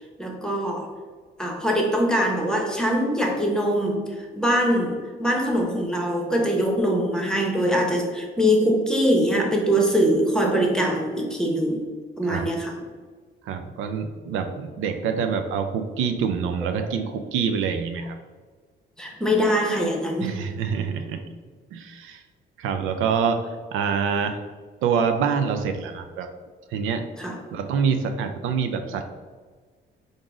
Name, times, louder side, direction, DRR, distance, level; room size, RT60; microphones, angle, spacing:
voice 1, 0.2-0.9 1.4-11.9 12.2-12.8 19.0-20.3 27.2-27.4, equal, 5° left, 1 dB, 0.9 m, -23 dB
voice 2, 13.5-18.1 20.2-21.2 21.7-22.2 22.6-23.4 23.7-24.4 24.8-26.3 26.7-27.1 27.5-29.0, right 6 dB, 90° right, 7 dB, 0.4 m, -26 dB
3.8 x 2.6 x 4.6 m, 1.5 s
cardioid pair, 90°, 20 cm